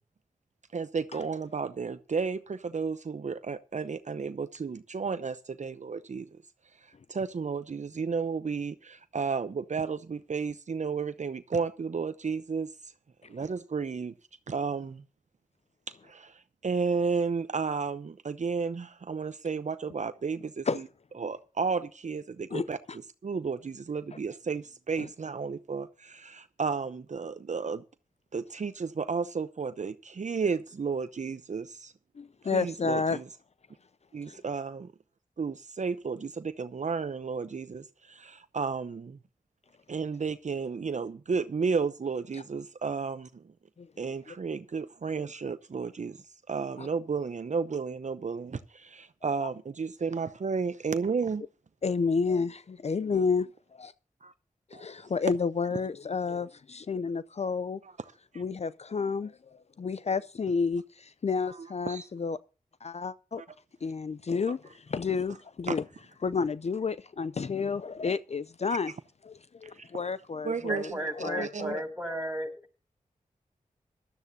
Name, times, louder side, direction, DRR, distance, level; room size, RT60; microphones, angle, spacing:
voice 1, 0.7-6.3 6.7-12.9 13.3-14.1 14.5-15.0 15.9-20.8 21.2-22.8 23.2-27.8 28.3-31.9 32.5-33.2 34.1-34.9 35.4-39.2 39.9-43.4 44.0-51.4 54.2-54.3 54.7-54.9 58.3-58.4 61.5-62.1 65.7-65.8 69.6-69.9 70.4-71.8, right 5 dB, 55° right, 0.7 m, -33 dB
voice 2, 22.5-23.0 25.0-25.1 32.2-33.2 34.2-34.4 42.3-42.4 43.8-43.9 44.3-44.4 46.8-46.9 49.4-49.5 51.8-53.9 54.7-57.8 58.4-62.4 62.8-63.4 63.8-65.8 66.2-68.9 69.2-71.8, left 5 dB, 50° left, 0.5 m, -31 dB
voice 3, 70.4-72.5, right 1 dB, 5° right, 6.3 m, -34 dB
17.5 x 12.5 x 2.7 m
cardioid pair, 40°, 14 cm